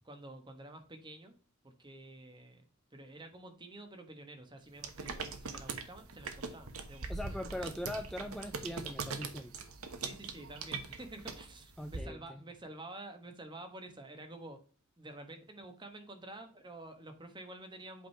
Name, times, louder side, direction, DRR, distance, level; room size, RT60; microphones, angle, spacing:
voice 1, 0.0-1.3 1.6-2.6 2.9-7.4 10.0-14.6 15.0-18.1, right 2 dB, 20° right, 5 dB, 1.3 m, -49 dB
sound 1, 4.8-12.0, right 4 dB, 80° right, 1.1 m, -42 dB
voice 2, 7.1-9.6 11.8-12.4, left 1 dB, ahead, 5 dB, 0.4 m, -41 dB
8.3 x 3.9 x 4.5 m, 0.39 s
head